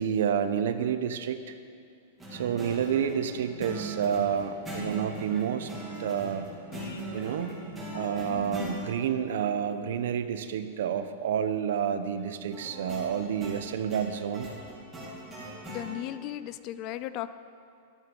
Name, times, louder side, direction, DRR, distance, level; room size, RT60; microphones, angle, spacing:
voice 1, 0.0-1.6 2.3-5.7 6.0-6.5 7.1-7.6 7.9-14.5, right 8 dB, 65° right, 10 dB, 0.9 m, -29 dB
sound 1, 2.2-8.8 12.5-15.9, right 1 dB, 5° right, 3.1 m, -40 dB
Piano, 6.7-12.9, left 4 dB, 85° left, 1.4 m, -51 dB
voice 2, 15.7-17.3, left 13 dB, 30° left, 14 dB, 0.4 m, -36 dB
13.5 x 13.0 x 5.3 m, 2.3 s
supercardioid pair, 170°, 0 cm